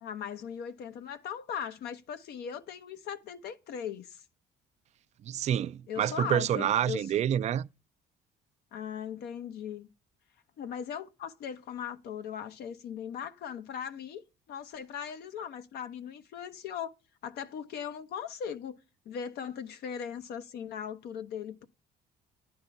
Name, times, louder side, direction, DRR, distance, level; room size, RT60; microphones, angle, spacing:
voice 1, 0.0-4.2 5.9-7.1 8.7-9.9 10.6-16.9 17.2-18.8 19.1-21.7, left 8 dB, 70° left, 0.9 m, -39 dB
voice 2, 5.3-7.7, right 10 dB, 45° right, 0.4 m, -28 dB
9.8 x 3.8 x 5.8 m
cardioid pair, 110°, 17 cm